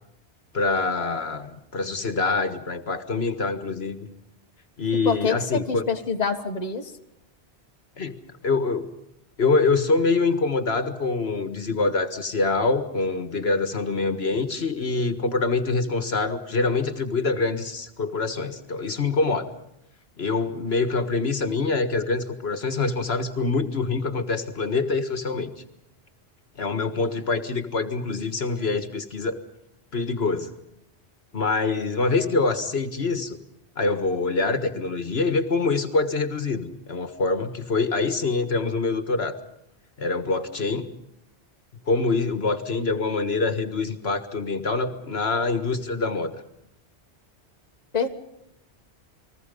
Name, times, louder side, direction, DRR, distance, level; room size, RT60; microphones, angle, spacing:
voice 1, 0.5-4.1 4.8-5.8 8.0-8.2 8.4-8.9 9.4-19.5 20.2-25.5 26.6-29.4 29.9-30.5 31.3-33.4 33.8-39.4 40.0-40.9 41.9-46.4, left 3 dB, 65° left, 9 dB, 1.8 m, -25 dB
voice 2, 5.0-5.4 5.7-6.9 47.9-48.1, left 5 dB, 40° left, 5 dB, 1.6 m, -25 dB
30.0 x 21.0 x 5.3 m, 0.83 s
omnidirectional pair, 1.1 m